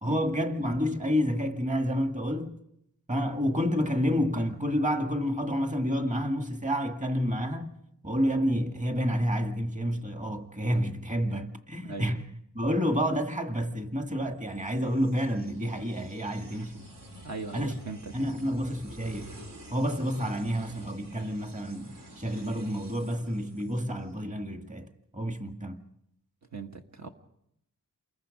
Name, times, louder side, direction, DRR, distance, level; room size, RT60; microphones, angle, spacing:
voice 1, 0.0-2.6 3.1-7.7 8.0-12.2 12.5-16.8 17.5-17.8 18.1-19.3 19.7-24.9 25.1-25.8, equal, 20° right, 1.9 m, -29 dB
voice 2, 11.8-12.1 17.2-18.1 26.5-27.1, right 4 dB, 55° right, 1.6 m, -39 dB
sound 1, 14.5-24.2, right 1 dB, 70° right, 4.6 m, -48 dB
29.0 x 22.0 x 5.3 m
wide cardioid pair, 145°, 34 cm